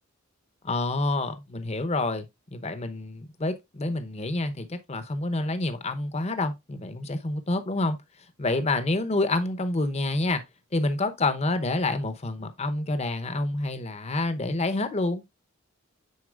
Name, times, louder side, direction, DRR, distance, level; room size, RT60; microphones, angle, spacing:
voice 1, 0.6-8.0 8.4-10.4 10.7-15.2, left 2 dB, 30° left, 0.8 m, -28 dB
9.6 x 4.1 x 2.4 m
head